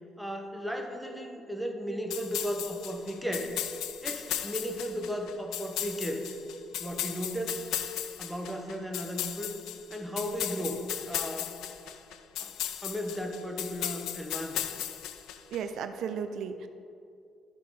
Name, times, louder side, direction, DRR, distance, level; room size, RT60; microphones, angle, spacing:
voice 1, 0.2-3.5 4.0-6.2 6.8-7.7 8.2-9.6 9.9-11.5 12.4-12.5 12.8-14.6, equal, ahead, 3 dB, 0.9 m, -35 dB
sound 1, 2.1-15.6, left 11 dB, 85° left, 0.4 m, -36 dB
voice 2, 15.5-16.7, right 7 dB, 75° right, 9 dB, 0.4 m, -34 dB
11.5 x 5.9 x 3.6 m, 2.5 s
cardioid pair, 110°, 0 cm